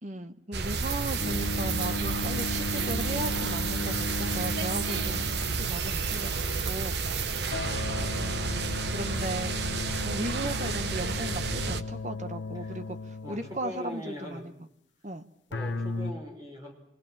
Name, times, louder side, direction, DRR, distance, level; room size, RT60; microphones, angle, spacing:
voice 1, 0.0-5.3 5.5-6.9 8.1-14.5 15.0-15.2, right 1 dB, 40° right, 9 dB, 1.2 m, -37 dB
sound 1, 0.5-11.8, right 4 dB, 60° right, 1.0 m, -31 dB
sound 2, 0.6-7.5, right 9 dB, 85° right, 1.4 m, -36 dB
sound 3, 1.2-5.9 7.5-13.8 15.5-16.1, left 3 dB, 70° left, 1.0 m, -36 dB
voice 2, 7.9-8.2 12.5-12.8 13.2-14.4 15.5-16.7, left 1 dB, 20° right, 1 dB, 4.9 m, -41 dB
25.5 x 21.0 x 7.4 m, 0.75 s
head